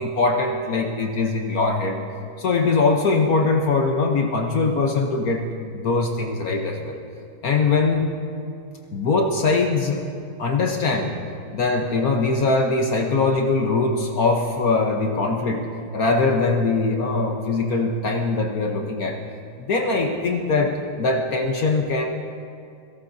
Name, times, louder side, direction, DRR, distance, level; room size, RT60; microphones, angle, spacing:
voice 1, 0.0-2.0 2.4-5.4 5.7-7.0 7.4-8.1 8.9-10.0 10.4-11.2 11.5-15.6 15.9-19.2 19.7-22.1, left 3 dB, 60° left, 2 dB, 1.4 m, -22 dB
26.0 x 17.0 x 2.7 m, 2.4 s
omnidirectional pair, 1.8 m